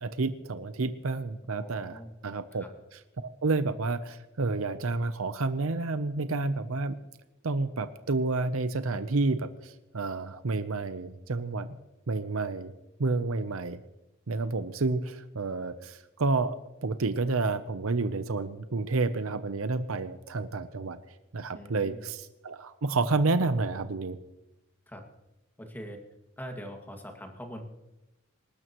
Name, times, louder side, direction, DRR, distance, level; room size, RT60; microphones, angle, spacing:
voice 1, 0.0-2.6 2.9-6.9 7.4-11.8 12.1-12.7 13.0-13.8 14.3-16.6 16.8-21.0 21.3-24.2, right 3 dB, 75° right, 11 dB, 0.8 m, -30 dB
voice 2, 1.6-2.1 2.5-2.7 21.5-22.1 24.9-25.0 25.6-26.0 26.4-27.7, equal, 10° left, 3 dB, 2.1 m, -42 dB
26.5 x 12.5 x 3.1 m, 0.97 s
head